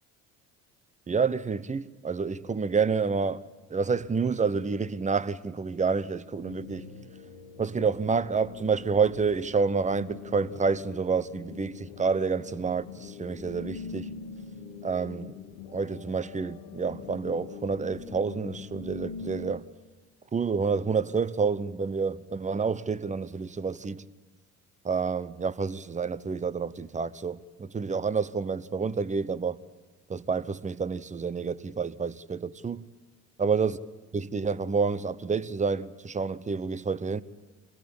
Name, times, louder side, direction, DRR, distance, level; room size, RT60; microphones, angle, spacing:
voice 1, 1.1-3.4 3.7-6.9 7.6-14.1 14.8-15.3 15.7-19.6 20.3-24.0 24.8-29.6 30.1-32.9 33.4-33.8 34.1-37.2, right 5 dB, 20° right, 0.8 m, -28 dB
sound 1, 6.4-19.5, left 6 dB, 75° left, 1.7 m, -44 dB
24.5 x 17.0 x 8.7 m
hypercardioid pair, 60°, 41 cm